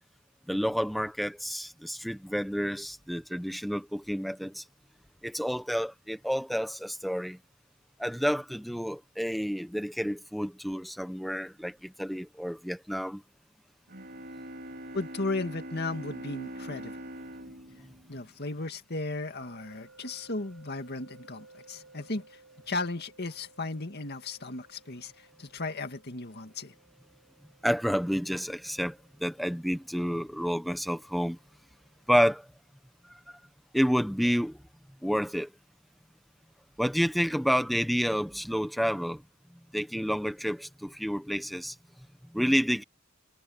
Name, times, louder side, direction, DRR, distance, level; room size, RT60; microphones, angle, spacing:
voice 1, 0.5-4.6 5.2-7.4 8.0-13.2 17.5-17.6 27.6-31.4 32.1-32.5 33.0-33.4 33.7-34.6 35.0-35.5 36.8-39.2 39.7-41.8 42.3-42.8, equal, ahead, 1.1 m, -29 dB
Bowed string instrument, 13.9-18.8, right 1 dB, 55° right, 4.5 m, -43 dB
voice 2, 14.9-17.0 18.1-22.4 22.7-26.7, left 2 dB, 50° left, 2.2 m, -35 dB
sound 1, 19.4-32.3, right 3 dB, 80° right, 6.0 m, -59 dB
head